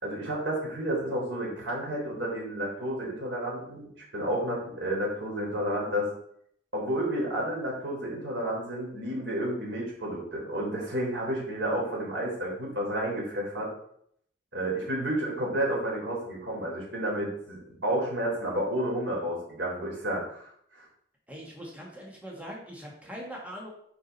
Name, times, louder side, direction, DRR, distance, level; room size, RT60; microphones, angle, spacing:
voice 1, 0.0-6.1 6.7-13.7 14.5-20.5 20.8-20.9, right 1 dB, 85° right, -3 dB, 3.5 m, -31 dB
voice 2, 21.3-23.7, equal, 10° right, -2 dB, 1.6 m, -41 dB
9.4 x 5.0 x 4.1 m, 0.68 s
head